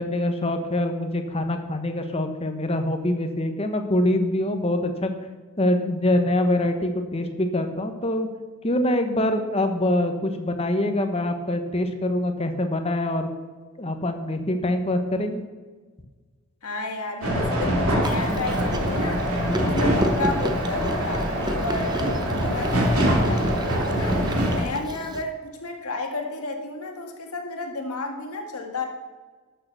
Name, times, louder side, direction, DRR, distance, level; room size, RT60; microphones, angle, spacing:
voice 1, 0.0-5.1 5.6-8.3 8.6-13.3 13.8-15.4, left 1 dB, 25° left, 6 dB, 1.1 m, -24 dB
voice 2, 16.6-19.2 19.6-24.2 24.5-28.8, left 2 dB, 85° left, 3 dB, 1.9 m, -32 dB
sound 1, 17.2-24.6, equal, 75° right, 2.9 m, -24 dB
Chewing mastication, 18.0-25.2, equal, 20° right, 0.8 m, -32 dB
12.5 x 6.7 x 6.7 m, 1.4 s
head